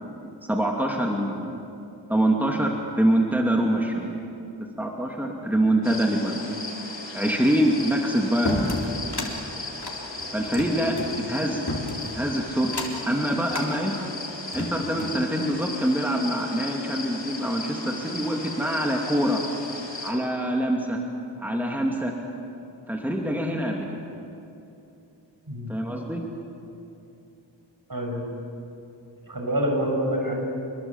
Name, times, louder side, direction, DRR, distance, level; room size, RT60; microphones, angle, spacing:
voice 1, 0.0-1.5 2.1-4.1 4.8-6.5 7.1-8.9 10.3-11.0 11.3-11.7 12.1-12.7 13.1-14.1 14.5-19.4 20.0-21.0 21.4-22.1 22.9-24.0 25.7-26.2, right 1 dB, 5° right, 0 dB, 2.8 m, -25 dB
sound 1, 5.8-20.1, left 2 dB, 75° left, 4.9 m, -36 dB
sound 2, 8.5-9.3 9.8-11.1 11.7-12.2 12.7-13.1 13.5-13.7 14.3-15.2, left 2 dB, 60° left, 3.7 m, -32 dB
voice 2, 27.9-28.2 29.3-30.5, equal, 50° right, 1 dB, 6.6 m, -26 dB
27.5 x 21.5 x 7.4 m, 2.7 s
wide cardioid pair, 40°, 44 cm